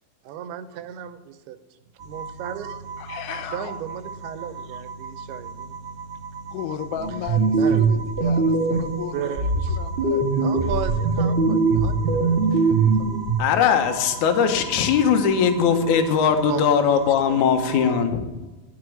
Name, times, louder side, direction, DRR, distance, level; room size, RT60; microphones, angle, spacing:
voice 1, 0.2-1.6 2.1-2.8 3.5-5.8 7.5-7.8 9.1-9.8 10.4-13.2 16.5-17.5, right 9 dB, 85° right, 10 dB, 2.7 m, -35 dB
sound 1, 2.0-18.0, right 5 dB, 25° right, 1.8 m, -37 dB
voice 2, 3.0-3.7 6.5-10.5, left 10 dB, 85° left, 7 dB, 1.8 m, -35 dB
sound 2, 7.0-9.0 9.4-13.4, right 4 dB, 60° right, 0.6 m, -21 dB
voice 3, 13.4-18.3, left 7 dB, 70° left, 6 dB, 2.0 m, -20 dB
11.0 x 6.2 x 7.7 m, 1.1 s
omnidirectional pair, 4.4 m